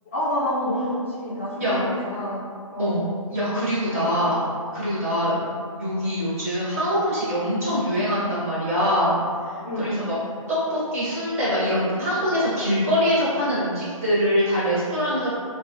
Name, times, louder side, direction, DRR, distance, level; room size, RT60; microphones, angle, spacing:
voice 1, 0.1-2.4 2.7-2.9 3.9-4.3 5.2-5.4 9.6-10.1, left 1 dB, 20° left, -9 dB, 0.4 m, -28 dB
voice 2, 2.8-4.4 4.7-5.4 5.8-10.2 10.5-15.3, equal, 25° right, -11 dB, 0.8 m, -24 dB
2.9 x 2.1 x 2.4 m, 2.1 s
hypercardioid pair, 170°, 18 cm